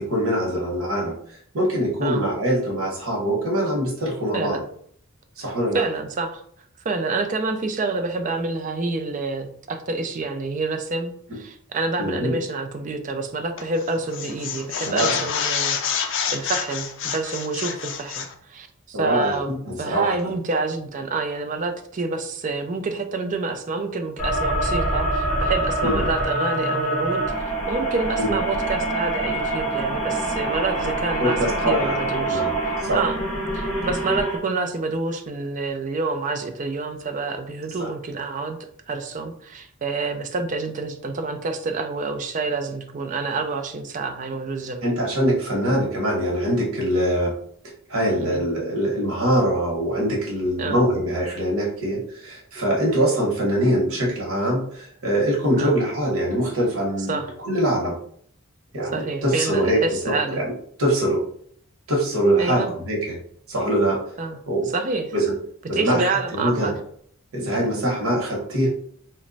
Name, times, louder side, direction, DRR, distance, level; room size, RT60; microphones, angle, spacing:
voice 1, 0.0-4.6 5.4-5.8 12.0-12.4 14.9-15.3 18.9-20.1 25.8-26.0 28.2-28.3 31.2-32.0 32.3-32.5 32.8-33.0 37.8-37.9 44.8-47.3 47.9-57.9 58.7-60.5 60.8-61.2 61.9-63.2 63.5-64.0 64.5-64.7 65.1-65.4 65.7-66.7 67.3-68.7, right 1 dB, 90° right, -2 dB, 1.0 m, -23 dB
voice 2, 5.4-6.4 6.8-15.8 16.3-19.5 19.8-31.4 31.7-33.2 33.5-44.8 48.2-48.4 50.6-50.8 55.6-55.8 57.1-57.3 58.9-60.4 62.4-62.7 64.2-64.4 64.7-65.1 65.7-66.8 67.6-67.7, right 3 dB, 35° right, 6 dB, 0.4 m, -28 dB
sound 1, 13.6-13.8 14.1-18.3, left 7 dB, 60° left, 0.4 m, -27 dB
sound 2, 24.2-34.4, right 1 dB, 35° left, 1.3 m, -25 dB
3.0 x 2.2 x 3.9 m, 0.64 s
head